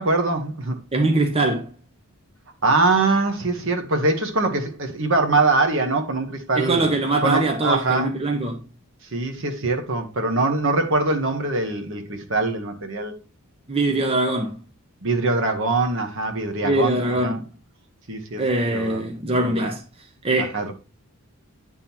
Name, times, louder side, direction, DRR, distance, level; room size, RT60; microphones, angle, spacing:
voice 1, 0.0-0.8 2.6-6.9 7.2-8.1 9.1-13.1 15.0-17.4 18.1-18.4 18.7-19.7 20.5-20.7, right 3 dB, 60° right, 1.2 m, -23 dB
voice 2, 0.9-1.7 6.6-8.6 13.7-14.6 16.6-17.5 18.4-19.8 20.2-20.6, right 2 dB, 25° right, 0.8 m, -22 dB
9.8 x 3.8 x 4.4 m
head